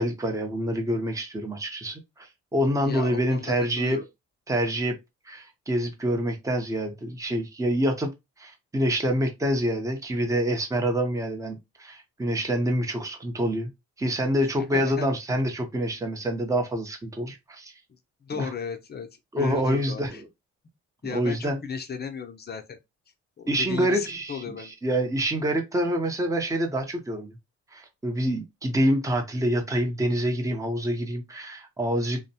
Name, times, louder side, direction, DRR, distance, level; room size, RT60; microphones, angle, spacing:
voice 1, 0.0-2.3 2.5-4.0 4.5-5.0 5.3-8.1 8.4-13.7 14.0-17.7 18.4-18.5 19.3-20.3 21.1-21.6 23.5-27.4 27.7-32.2, equal, 10° right, 0.7 m, -26 dB
voice 2, 2.8-4.0 14.6-15.1 18.2-19.1 19.4-20.2 21.0-22.8 23.4-24.7, left 6 dB, 35° left, 0.6 m, -35 dB
2.6 x 2.1 x 2.7 m
cardioid pair, 90°, 30 cm